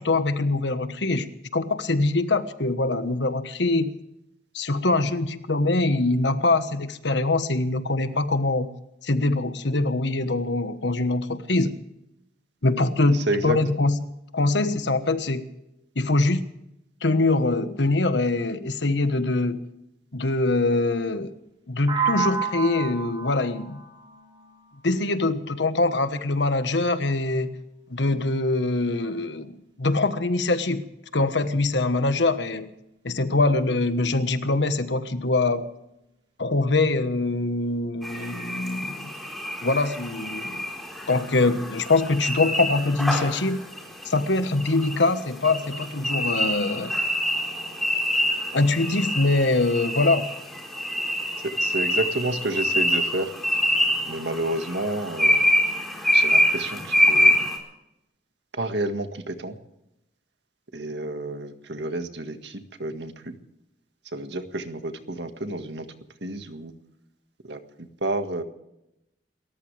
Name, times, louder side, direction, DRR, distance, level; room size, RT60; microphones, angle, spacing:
voice 1, 0.0-3.9 4.5-8.7 9.0-11.7 12.6-14.0 14.3-15.5 15.9-16.4 17.0-19.6 20.1-21.3 21.7-23.8 24.8-27.6 27.9-30.9 31.1-32.7 33.0-35.7 36.4-39.1 39.6-40.7 41.1-43.6 44.0-46.9 48.5-50.3, left 2 dB, 80° left, 10 dB, 1.4 m, -23 dB
voice 2, 13.1-13.6 51.4-53.3 54.1-55.4 56.1-57.3 58.5-59.6 60.7-63.4 64.1-65.9 66.2-66.7 67.4-68.4, right 2 dB, 75° right, 7 dB, 1.8 m, -30 dB
sound 1, 21.9-25.8, right 6 dB, 25° right, 4.0 m, -31 dB
sound 2, 38.0-57.6, equal, ahead, 4.3 m, -26 dB
29.0 x 14.0 x 3.4 m, 0.86 s
head